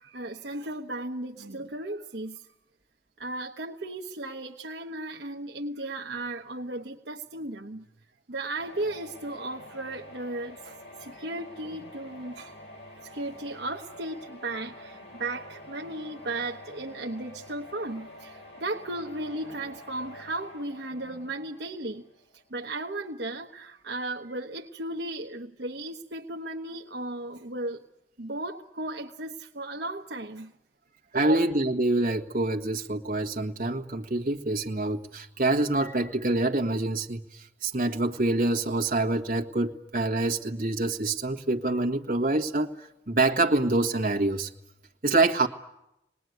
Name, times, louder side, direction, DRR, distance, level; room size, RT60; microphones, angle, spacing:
voice 1, 0.0-2.5 3.2-7.9 8.3-12.5 13.0-22.0 22.5-27.8 28.2-30.5 31.2-31.4, right 2 dB, 70° right, 2 dB, 1.1 m, -35 dB
sound 1, 8.6-22.4, left 1 dB, 80° left, 5.8 m, -47 dB
voice 2, 31.1-44.5 45.0-45.5, right 2 dB, 50° right, 3 dB, 1.6 m, -26 dB
26.5 x 20.0 x 9.5 m, 0.90 s
head